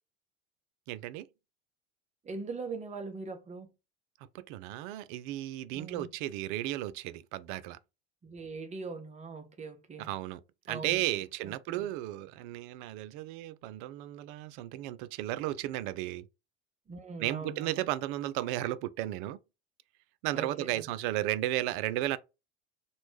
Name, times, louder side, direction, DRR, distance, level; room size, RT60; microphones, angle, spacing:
voice 1, 0.9-1.3 4.3-7.8 10.0-10.4 10.7-16.3 17.2-19.4 20.2-22.2, right 15 dB, 50° right, 0.4 m, -34 dB
voice 2, 2.2-3.7 5.7-6.1 8.2-10.1 10.7-11.0 11.4-11.9 16.9-17.8 20.3-20.8, right 4 dB, 20° right, 0.8 m, -41 dB
3.0 x 2.3 x 3.2 m
figure-of-eight pair, 75°, 34 cm